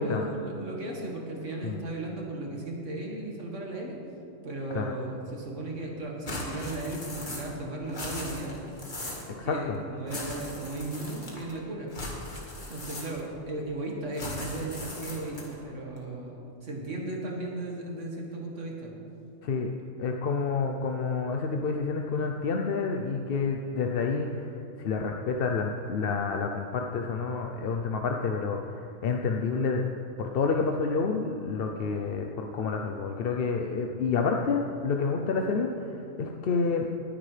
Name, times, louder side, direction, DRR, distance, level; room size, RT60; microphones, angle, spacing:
voice 1, 0.0-4.0 4.4-8.6 9.3-11.9 12.7-19.0, right 2 dB, 65° right, -1 dB, 2.0 m, -36 dB
sound 1, 6.3-7.6 7.9-9.3 10.1-11.5 11.9-13.4 14.1-15.6, left 1 dB, 35° left, 1.9 m, -39 dB
voice 2, 9.4-9.8 19.4-19.7 20.0-24.4 24.8-28.7 29.0-29.8 30.2-35.7 36.2-36.9, left 4 dB, 55° left, 2 dB, 0.7 m, -29 dB
19.0 x 9.9 x 3.3 m, 2.7 s
omnidirectional pair, 1.4 m